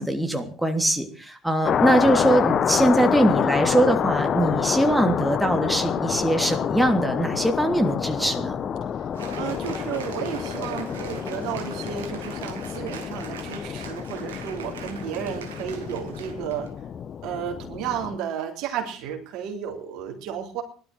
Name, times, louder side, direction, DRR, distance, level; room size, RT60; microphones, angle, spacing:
voice 1, 0.0-8.6, right 1 dB, 5° right, 4 dB, 3.0 m, -22 dB
sound 1, 1.6-18.2, left 8 dB, 45° left, 1.0 m, -28 dB
Cheering / Applause, 9.1-16.7, right 8 dB, 85° right, 2.4 m, -42 dB
voice 2, 9.4-16.7 17.2-20.6, right 8 dB, 65° right, 3 dB, 3.5 m, -32 dB
16.5 x 12.5 x 6.3 m, 0.40 s
hypercardioid pair, 65°, 0 cm